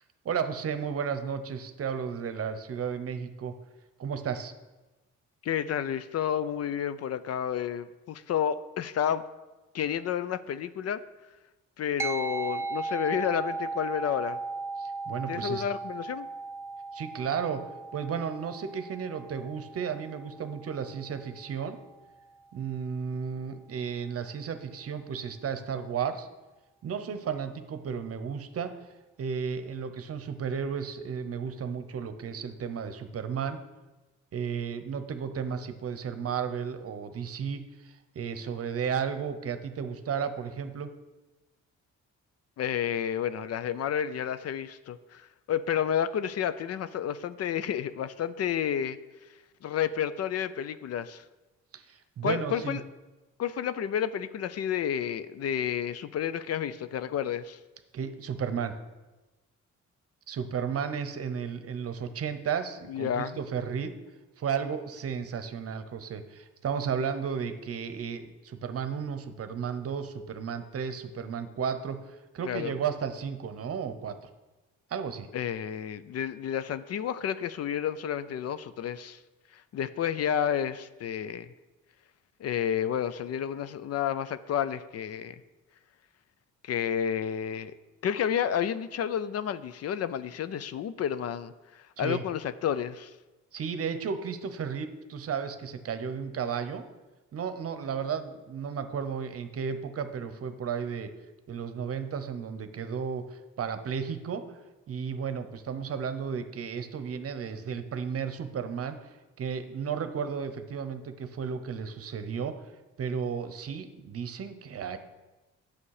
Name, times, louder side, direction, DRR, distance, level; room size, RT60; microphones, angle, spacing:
voice 1, 0.2-3.5 4.0-4.5 14.8-15.6 16.9-21.8 22.5-26.3 26.8-33.6 34.3-40.9 51.7-52.8 57.9-58.7 60.3-63.9 64.4-74.3 74.9-75.3 92.0-92.2 93.5-96.8 97.3-101.1 101.5-104.6 104.9-112.7 113.0-115.0, right 7 dB, 50° right, 10 dB, 0.9 m, -33 dB
voice 2, 5.4-9.2 9.7-11.0 11.8-14.4 15.3-16.3 42.6-49.0 49.6-51.2 52.2-52.8 53.4-57.6 62.9-63.4 72.4-72.7 75.3-79.2 79.5-81.5 82.4-85.4 86.6-87.7 88.0-93.1, left 9 dB, 55° left, 14 dB, 0.5 m, -30 dB
sound 1, 12.0-21.7, right 3 dB, 10° right, 0.5 m, -37 dB
8.5 x 6.5 x 4.8 m, 1.1 s
cardioid pair, 90°, 30 cm